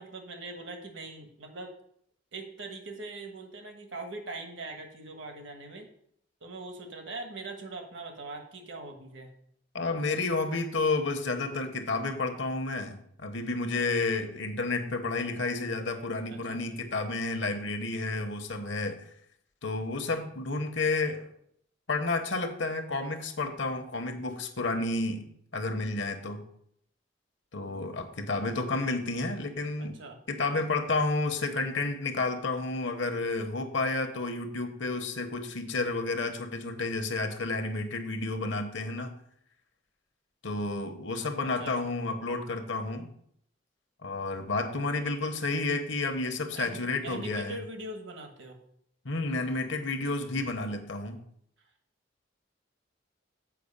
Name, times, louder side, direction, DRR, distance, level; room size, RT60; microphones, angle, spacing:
voice 1, 0.0-1.7 2.3-5.9 6.4-9.3 16.3-16.6 29.8-30.2 41.6-41.9 46.5-48.6, right 2 dB, 85° right, 4 dB, 1.4 m, -41 dB
voice 2, 9.7-19.0 19.6-21.3 21.9-25.3 25.5-26.4 27.5-29.9 30.3-39.1 40.4-43.1 44.0-47.6 49.0-51.2, left 3 dB, 70° left, 6 dB, 1.1 m, -31 dB
7.7 x 5.1 x 5.4 m, 0.68 s
head